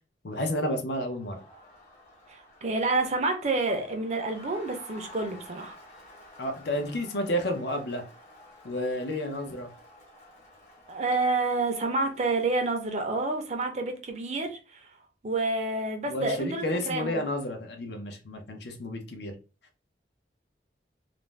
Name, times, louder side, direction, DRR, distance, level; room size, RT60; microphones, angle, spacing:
voice 1, 0.2-1.4 6.4-8.0 8.6-9.7 16.1-19.3, left 1 dB, 70° left, 0.6 m, -31 dB
Crowd, 1.0-13.5, left 1 dB, 40° left, 0.9 m, -52 dB
voice 2, 2.3-5.8 10.9-14.9 15.2-17.2, right 3 dB, 40° right, 0.5 m, -29 dB
2.4 x 2.0 x 3.1 m
head